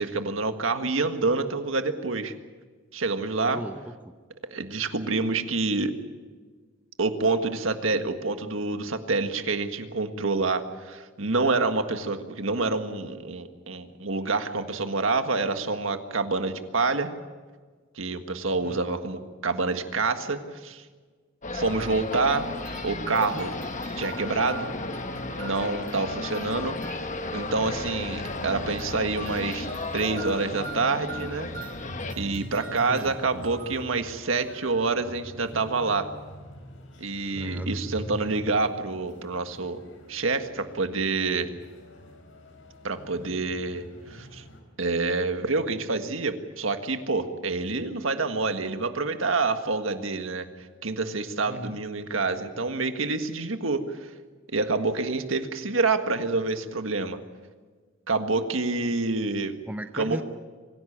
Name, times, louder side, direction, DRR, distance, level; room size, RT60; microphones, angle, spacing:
voice 1, 0.0-2.3 2.9-3.6 4.5-5.9 7.0-17.1 17.9-20.8 21.5-22.5 22.8-23.5 24.0-24.7 25.4-26.8 27.3-29.7 29.9-31.5 32.2-36.1 37.0-39.8 40.1-41.5 42.8-44.4 44.8-50.5 50.8-54.1 54.5-57.2 58.1-59.5 59.9-60.2, right 3 dB, 85° right, 7 dB, 1.7 m, -27 dB
voice 2, 3.4-4.1 18.6-18.8 32.9-33.1 37.4-37.8 51.5-51.8 58.8-58.9 59.7-60.2, right 1 dB, 10° right, 7 dB, 0.7 m, -37 dB
sound 1, 21.4-32.1, left 3 dB, 40° left, 1.2 m, -34 dB
sound 2, 21.6-27.3 28.2-33.8, right 4 dB, 50° right, 6.2 m, -45 dB
sound 3, 26.5-44.6, equal, 75° left, 4.6 m, -43 dB
25.0 x 16.0 x 8.8 m, 1.4 s
head